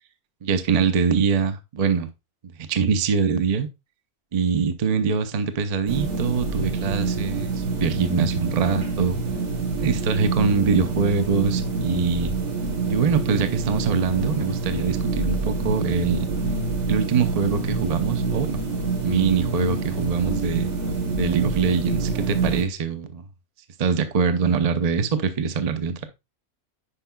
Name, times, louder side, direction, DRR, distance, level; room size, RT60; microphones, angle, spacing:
voice 1, 0.4-2.1 2.7-3.7 4.3-9.2 9.8-12.3 12.9-16.3 16.9-18.6 19.0-20.7 21.1-23.2 23.8-26.0, right 5 dB, 40° right, 0.6 m, -23 dB
sound 1, 5.9-22.6, right 4 dB, 55° right, 1.6 m, -26 dB
9.9 x 5.3 x 2.3 m
omnidirectional pair, 1.5 m